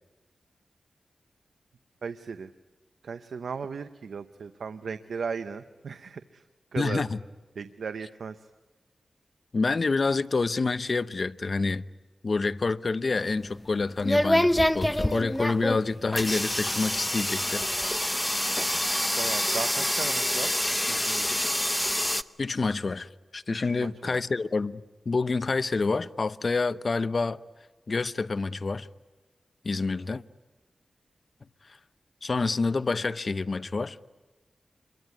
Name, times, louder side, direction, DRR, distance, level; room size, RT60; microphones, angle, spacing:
voice 1, 2.0-2.5 3.0-6.5 6.7-7.0 7.5-8.5 18.8-18.9 19.2-20.5 20.9-21.4 23.7-24.2, right 5 dB, 90° right, 0.9 m, -36 dB
voice 2, 6.8-7.2 9.5-11.8 12.2-17.7 22.4-27.4 27.9-28.9 29.6-30.2 32.2-34.0, left 3 dB, 50° left, 0.8 m, -28 dB
sound 1, 13.2-22.2, left 1 dB, 10° left, 0.9 m, -26 dB
27.0 x 23.0 x 9.5 m
wide cardioid pair, 80°, 0 cm